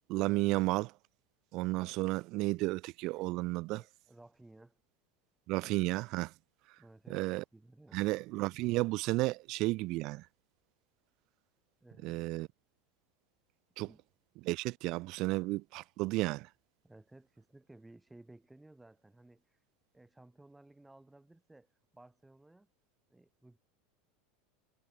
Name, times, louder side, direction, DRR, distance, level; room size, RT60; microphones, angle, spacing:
voice 1, 0.1-0.9 1.5-3.8 5.5-6.3 7.1-7.4 7.9-10.2 12.0-12.5 13.8-13.9 14.4-16.5, right 21 dB, 45° right, 0.8 m, -32 dB
voice 2, 3.7-4.8 6.8-8.0 11.8-12.3 13.8-14.0 16.8-19.4 19.9-21.7 21.9-22.7 23.1-23.6, right 2 dB, 5° right, 6.8 m, -58 dB
figure-of-eight pair, 80°, 0 cm